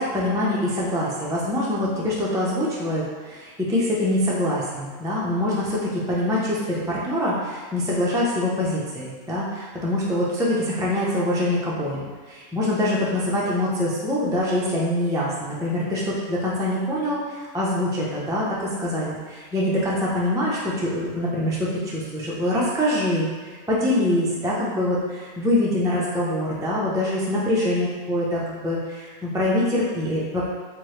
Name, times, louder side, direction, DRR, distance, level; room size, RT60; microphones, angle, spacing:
voice 1, 0.0-30.5, left 1 dB, 5° right, -6 dB, 0.3 m, -24 dB
4.6 x 2.6 x 3.1 m, 1.5 s
omnidirectional pair, 1.2 m